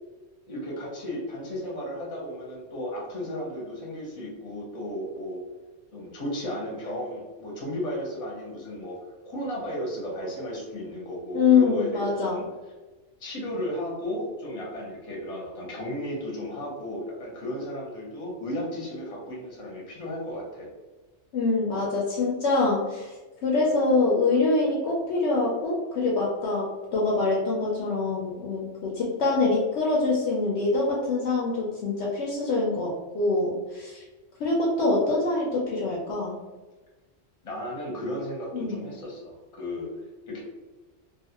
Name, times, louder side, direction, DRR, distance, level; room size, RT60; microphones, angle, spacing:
voice 1, 0.5-5.4 5.9-9.0 9.2-12.4 13.2-20.7 37.4-39.9 40.3-40.4, equal, 30° left, -3 dB, 0.8 m, -34 dB
voice 2, 11.3-12.4 21.3-23.1 23.4-34.0 34.4-36.4 38.5-38.8, left 3 dB, 65° left, -4 dB, 0.8 m, -25 dB
2.5 x 2.4 x 2.8 m, 1.2 s
omnidirectional pair, 1.3 m